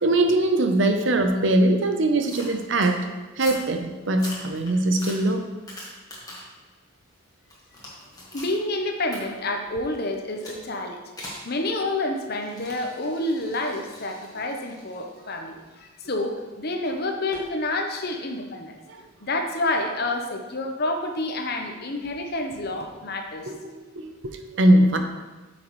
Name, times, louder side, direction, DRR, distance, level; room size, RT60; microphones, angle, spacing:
voice 1, 0.0-3.0 3.4-5.4 23.5-25.0, right 1 dB, 65° right, 6 dB, 0.7 m, -21 dB
sound 1, 2.2-2.9 3.3-3.7 4.1-6.6 7.0-8.6 9.1-9.2 10.4-10.6 11.2-11.5 12.4-16.3 17.3-17.5, left 1 dB, 20° left, 1.5 m, -42 dB
voice 2, 8.3-11.0 11.4-18.8 19.2-23.5, left 2 dB, 50° left, 4 dB, 0.8 m, -28 dB
8.3 x 6.1 x 3.1 m, 1.2 s
head